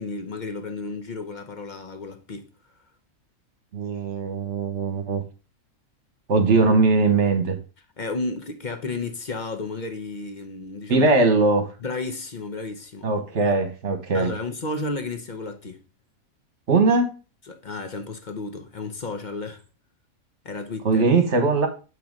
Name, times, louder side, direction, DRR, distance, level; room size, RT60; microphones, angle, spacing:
voice 1, 0.0-2.5 8.0-11.1 11.8-13.1 14.1-15.8 17.5-19.6 20.4-21.0, left 3 dB, 40° left, 0.8 m, -32 dB
voice 2, 3.7-5.2 6.3-7.6 10.9-11.7 13.0-14.3 16.7-17.2 20.8-21.7, right 3 dB, 55° right, 1.5 m, -20 dB
8.7 x 3.2 x 5.2 m
omnidirectional pair, 1.4 m